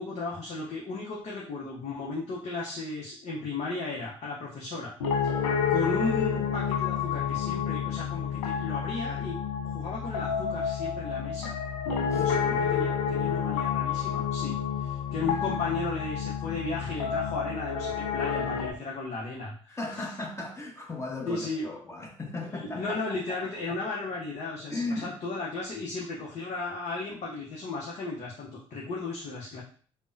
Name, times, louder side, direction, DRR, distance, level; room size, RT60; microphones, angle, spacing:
voice 1, 0.0-4.9 5.7-9.4 9.6-11.5 12.1-20.0 21.3-21.7 22.5-29.6, left 3 dB, 50° left, -3 dB, 0.8 m, -35 dB
Piano, 5.0-18.7, left 7 dB, 85° left, 0.4 m, -29 dB
voice 2, 11.9-12.8 19.7-23.0 23.3-23.4 23.7-23.8 24.7-25.2, left 2 dB, 20° left, 0 dB, 1.0 m, -37 dB
3.4 x 2.1 x 2.6 m, 0.44 s
hypercardioid pair, 55°, 15 cm